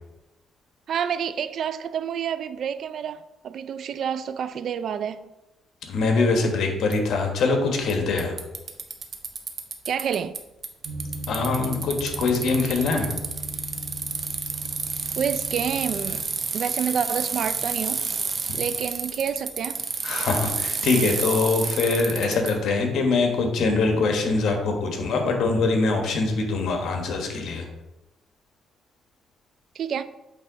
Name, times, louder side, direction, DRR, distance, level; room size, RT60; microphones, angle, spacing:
voice 1, 0.9-5.3 9.9-10.4 15.2-18.0 18.5-19.8 29.8-30.0, right 8 dB, 65° right, 0.3 m, -28 dB
voice 2, 5.9-8.3 11.3-13.1 20.0-27.7, left 3 dB, 70° left, 1.3 m, -23 dB
Bicycle, 6.9-7.0 7.9-8.0 8.2-10.4 10.6-22.5, right 5 dB, 45° right, 0.9 m, -30 dB
sound 1, 10.8-16.2, right 1 dB, 80° right, 1.7 m, -37 dB
8.4 x 3.4 x 4.0 m
cardioid pair, 90°, 0 cm